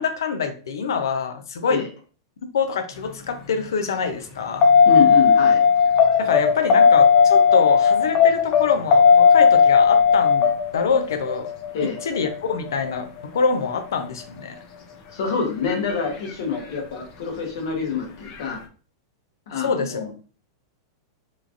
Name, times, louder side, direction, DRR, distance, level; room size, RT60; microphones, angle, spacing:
voice 1, 0.0-1.8 2.5-4.7 6.2-10.5 10.7-11.5 12.0-13.1 13.3-14.6 19.6-20.1, left 5 dB, 85° left, 7 dB, 0.5 m, -25 dB
sound 1, 4.6-13.0 15.7-15.8, left 6 dB, 40° left, 0.6 m, -16 dB
voice 2, 4.8-5.6 11.7-12.0 15.1-18.6 19.5-20.1, left 5 dB, 70° left, 0 dB, 1.0 m, -26 dB
3.0 x 2.4 x 2.4 m, 0.38 s
hypercardioid pair, 125°, 2 cm